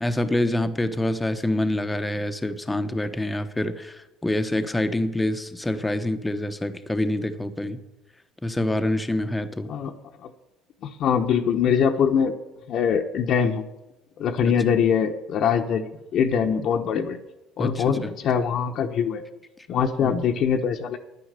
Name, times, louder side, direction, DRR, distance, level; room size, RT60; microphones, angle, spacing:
voice 1, 0.0-7.8 8.4-9.7 17.6-18.1 20.0-20.1, left 1 dB, 10° left, 9 dB, 0.9 m, -26 dB
voice 2, 10.8-12.3 12.7-13.7 14.2-17.2 17.6-19.2 19.7-21.0, left 7 dB, 60° left, 4 dB, 1.0 m, -23 dB
10.0 x 9.5 x 6.7 m, 0.97 s
supercardioid pair, 100°, 0 cm